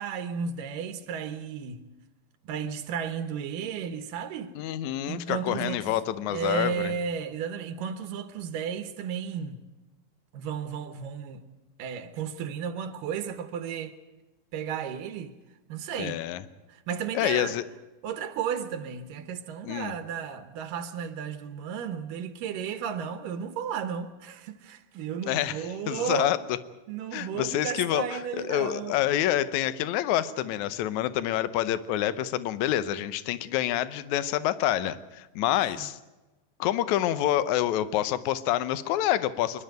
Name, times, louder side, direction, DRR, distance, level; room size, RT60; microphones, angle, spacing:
voice 1, 0.0-1.8 2.4-4.5 5.1-5.8 6.3-9.6 10.3-11.4 11.8-14.0 14.5-15.3 15.7-16.2 16.7-17.6 18.0-26.3 26.9-29.0 35.8-35.9, right 7 dB, 80° right, 2.7 m, -33 dB
voice 2, 4.6-6.9 16.0-16.4 17.1-17.6 19.6-19.9 25.3-25.5 25.9-26.4 27.1-28.0 28.3-36.0 36.6-39.6, left 12 dB, 70° left, 2.0 m, -27 dB
25.5 x 11.5 x 9.1 m
omnidirectional pair, 3.8 m